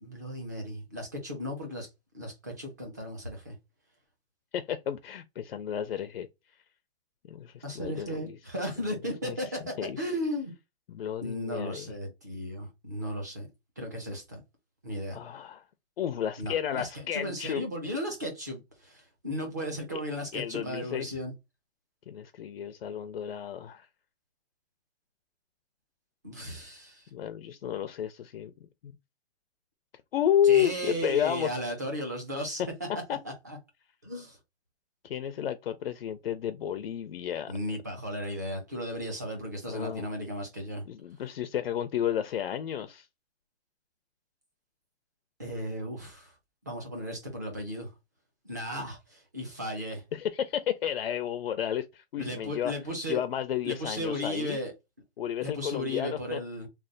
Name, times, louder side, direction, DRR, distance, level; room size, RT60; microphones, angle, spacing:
voice 1, 0.0-1.9 2.1-3.5 7.6-10.5 11.2-13.5 13.8-14.4 14.8-15.2 16.4-21.3 26.2-27.1 30.5-32.6 33.2-33.6 34.0-34.4 37.5-40.8 45.4-46.3 46.6-47.9 48.4-50.0 52.2-53.2 53.6-54.7 55.4-56.7, equal, 15° right, 0.5 m, -35 dB
voice 2, 4.5-6.3 7.3-8.4 8.8-8.9 9.2-9.4 9.8-10.0 10.9-11.9 15.1-15.6 16.0-17.6 20.3-21.1 22.1-23.9 27.1-28.5 28.8-28.9 30.1-31.5 33.1-33.2 35.0-37.5 39.7-40.1 40.9-43.1 50.1-52.7 53.1-54.6 55.2-56.4, left 9 dB, 65° left, 0.5 m, -31 dB
3.3 x 2.3 x 3.7 m
hypercardioid pair, 180°, 32 cm